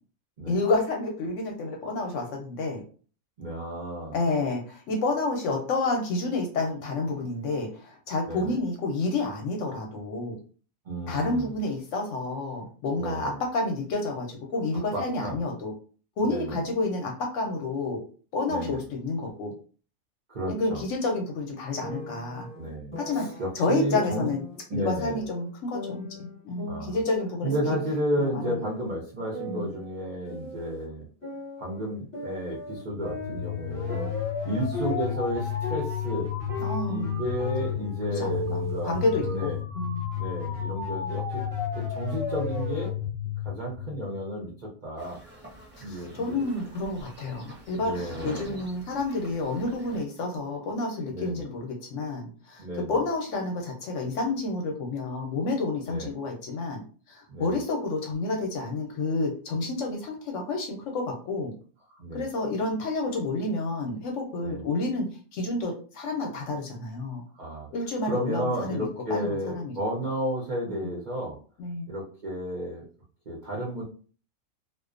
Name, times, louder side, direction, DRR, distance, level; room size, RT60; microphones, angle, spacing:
voice 1, 0.5-2.8 4.1-10.4 11.1-15.7 16.2-18.0 18.3-19.5 20.5-22.5 23.0-24.4 24.7-27.5 28.2-28.6 29.4-29.7 36.6-37.2 38.2-40.0 45.9-61.5 62.1-65.1 65.3-67.2 67.7-68.8 69.1-69.7 71.6-71.9, left 2 dB, 70° left, 2 dB, 0.8 m, -29 dB
voice 2, 3.4-4.2 8.2-8.6 10.8-11.6 13.0-13.4 14.9-15.4 16.2-16.6 18.5-18.8 20.3-20.8 22.5-24.3 24.7-25.2 26.7-27.0 27.4-31.0 31.6-34.1 34.4-36.3 36.8-38.9 39.3-39.6 40.2-41.4 41.8-42.9 43.4-45.2 45.8-46.4 47.8-48.6 51.1-51.5 52.6-53.0 55.9-56.1 57.3-57.6 61.9-62.2 64.4-64.6 67.3-67.7 68.1-71.4 71.9-72.8 73.3-73.8, right 1 dB, 60° right, -5 dB, 0.4 m, -32 dB
sound 1, 21.8-23.5 23.9-25.5 25.7-28.0 28.4-30.9 31.2-35.3 35.6-39.6, equal, 5° left, 0.9 m, -38 dB
sound 2, 32.7-44.5, left 8 dB, 35° left, 0.6 m, -32 dB
sound 3, 45.0-50.0, right 1 dB, 10° right, 0.5 m, -46 dB
2.4 x 2.1 x 2.4 m, 0.40 s
omnidirectional pair, 1.5 m